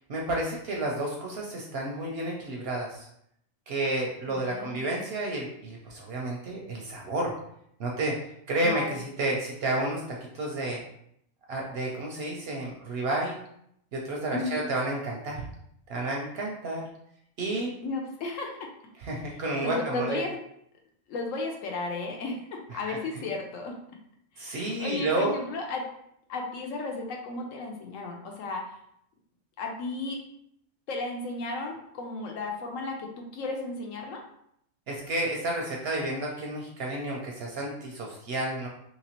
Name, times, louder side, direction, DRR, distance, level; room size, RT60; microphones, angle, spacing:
voice 1, 0.1-3.1 3.7-7.3 7.8-8.2 8.5-10.8 11.5-13.4 13.9-15.5 15.9-16.8 17.4-17.7 19.0-20.2 22.9-23.0 24.4-25.3 34.9-38.7, right 2 dB, 60° right, -1 dB, 0.7 m, -31 dB
voice 2, 4.3-4.9 8.6-9.0 14.3-14.6 17.8-18.7 19.6-20.4 21.1-23.8 24.3-25.9 26.3-28.8 29.6-30.2 30.9-34.2, left 2 dB, 75° left, 1 dB, 1.0 m, -34 dB
3.0 x 2.8 x 2.8 m, 0.73 s
omnidirectional pair, 1.4 m